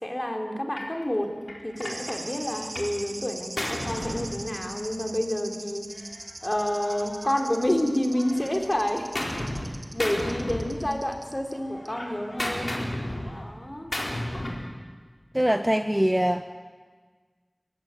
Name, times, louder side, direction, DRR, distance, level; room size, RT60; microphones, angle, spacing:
voice 1, 0.0-1.3 1.6-5.9 6.4-12.8 13.3-13.9, left 1 dB, 25° left, 3 dB, 3.8 m, -29 dB
Gunshot gunfire, 0.8-1.0 1.5-3.0 3.3-5.0 5.9-7.8 8.1-9.7 10.0-11.2 11.5-14.7, left 1 dB, 65° left, 4.4 m, -34 dB
sound 1, 1.8-11.5 11.9-12.0, right 2 dB, 60° right, 1.9 m, -41 dB
voice 2, 15.3-16.4, equal, 15° right, 7 dB, 1.1 m, -23 dB
24.0 x 17.5 x 9.2 m, 1.5 s
wide cardioid pair, 40°, 0 cm